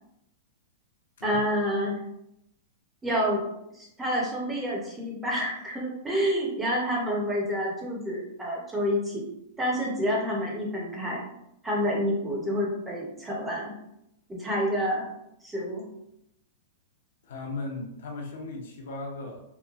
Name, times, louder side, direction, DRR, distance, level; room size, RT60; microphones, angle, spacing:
voice 1, 1.2-2.0 3.0-3.4 3.7-9.2 9.6-11.2 11.6-13.7 14.3-15.1 15.4-15.8, equal, 10° right, -3 dB, 0.5 m, -28 dB
voice 2, 17.2-19.4, left 2 dB, 75° left, 1 dB, 0.6 m, -37 dB
2.9 x 2.1 x 2.3 m, 0.81 s
supercardioid pair, 165°, 0 cm